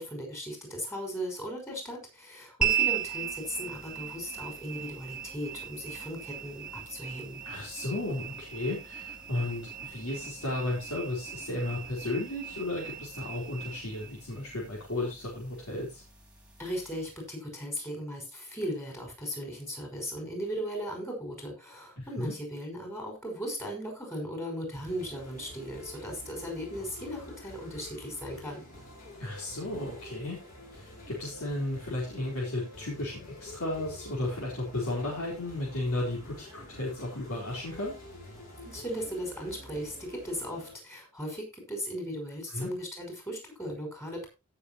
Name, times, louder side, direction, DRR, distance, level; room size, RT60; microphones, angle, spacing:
voice 1, 0.0-7.4 16.6-28.6 38.6-44.3, equal, 10° left, 2 dB, 5.6 m, -37 dB
sound 1, 2.6-17.2, right 9 dB, 5° right, 2.7 m, -37 dB
voice 2, 7.4-16.0 22.0-22.3 29.2-30.4 30.7-38.0 42.5-42.7, left 2 dB, 75° left, -4 dB, 4.3 m, -34 dB
sound 2, 24.7-40.7, left 1 dB, 40° left, 7.5 m, -48 dB
17.0 x 6.8 x 3.0 m, 0.28 s
head